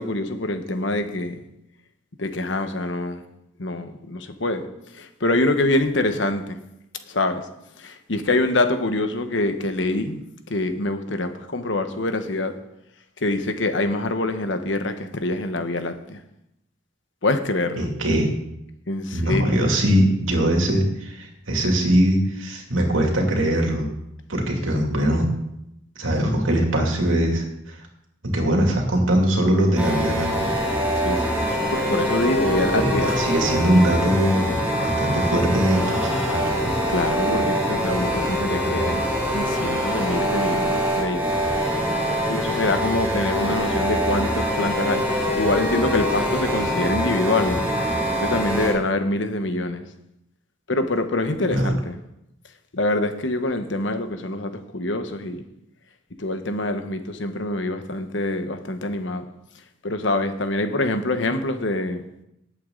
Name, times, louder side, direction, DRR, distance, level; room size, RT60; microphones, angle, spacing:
voice 1, 0.0-1.4 2.2-3.2 3.6-4.7 4.9-6.6 7.1-7.4 7.8-10.2 10.5-12.5 13.2-16.2 17.2-17.9 18.9-19.7 31.0-33.2 36.9-39.0 39.3-41.3 42.3-47.7 48.2-49.8 50.7-52.0 52.7-55.4 56.2-59.3 59.8-62.1, left 2 dB, 65° left, 8 dB, 1.2 m, -25 dB
voice 2, 17.8-18.3 19.1-23.9 24.3-25.3 26.0-27.7 28.2-30.5 32.7-36.7 51.5-51.7, right 1 dB, 90° right, 1 dB, 2.6 m, -21 dB
sound 1, 29.8-48.7, equal, 5° right, 5.6 m, -24 dB
18.5 x 8.4 x 3.9 m, 0.84 s
head